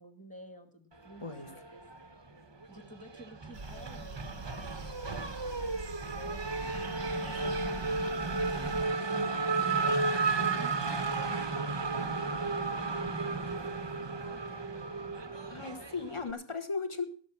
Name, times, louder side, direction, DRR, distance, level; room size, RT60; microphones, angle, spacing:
voice 1, 0.0-1.8 2.7-5.1 5.4-10.1 10.6-12.8 13.2-15.8, equal, 5° left, 6 dB, 2.3 m, -53 dB
Race car auto racing / Accelerating revving vroom, 1.3-2.3 2.6-16.3, right 3 dB, 20° right, 0.9 m, -33 dB
sound 1, 3.5-8.9, right 3 dB, 35° right, 1.2 m, -44 dB
voice 2, 15.5-17.0, left 4 dB, 20° left, 8 dB, 1.5 m, -36 dB
17.0 x 7.2 x 6.0 m, 0.43 s
omnidirectional pair, 1.5 m